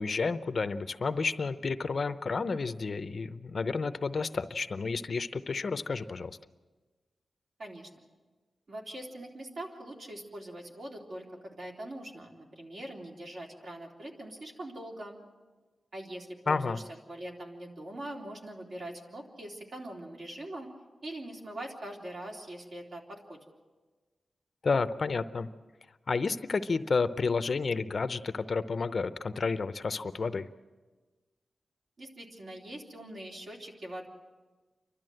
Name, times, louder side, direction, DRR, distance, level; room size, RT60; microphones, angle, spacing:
voice 1, 0.0-6.4 16.5-16.8 24.6-25.5 26.1-30.5, left 4 dB, 45° left, 11 dB, 0.6 m, -31 dB
voice 2, 7.6-7.9 8.7-15.2 15.9-16.8 17.1-20.7 21.0-23.4 32.0-34.1, right 1 dB, 55° right, -1 dB, 3.3 m, -42 dB
29.0 x 12.5 x 7.8 m, 1.3 s
wide cardioid pair, 150°, 0 cm